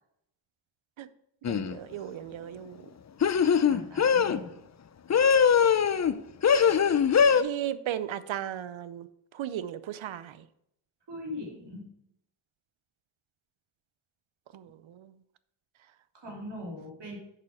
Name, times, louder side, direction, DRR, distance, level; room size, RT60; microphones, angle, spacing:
sound 1, 1.4-1.8 3.2-4.4 5.1-6.1 6.4-7.4, left 7 dB, 35° left, 0.5 m, -22 dB
voice 1, 1.5-2.8 6.6-6.7 7.3-9.1 9.3-10.4 14.5-15.1, right 11 dB, 75° right, 15 dB, 0.6 m, -36 dB
voice 2, 3.7-4.5 11.1-11.9 16.1-17.2, left 1 dB, 60° right, -2 dB, 2.7 m, -40 dB
6.6 x 5.7 x 4.9 m, 0.77 s
cardioid pair, 70°, 47 cm